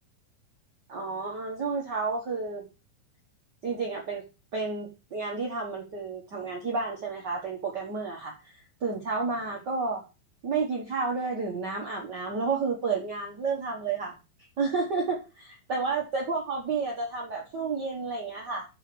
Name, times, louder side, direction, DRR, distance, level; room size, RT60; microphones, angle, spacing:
voice 1, 0.9-2.7 3.6-4.2 4.5-8.5 8.8-10.0 10.4-14.1 14.6-18.6, right 4 dB, 55° right, -2 dB, 1.2 m, -31 dB
5.9 x 5.1 x 6.1 m, 0.29 s
omnidirectional pair, 4.1 m